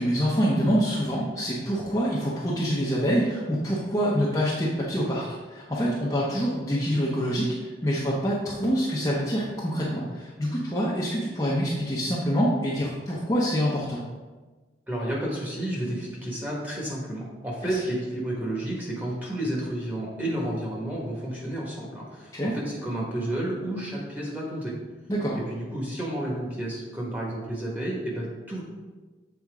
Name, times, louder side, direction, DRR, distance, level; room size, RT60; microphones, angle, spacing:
voice 1, 0.0-7.5 7.8-14.0 22.3-22.5 25.1-25.4, equal, 20° left, -6 dB, 0.8 m, -26 dB
voice 2, 14.9-24.8 25.5-28.6, right 1 dB, 10° right, -5 dB, 1.5 m, -31 dB
7.3 x 4.3 x 3.6 m, 1.3 s
head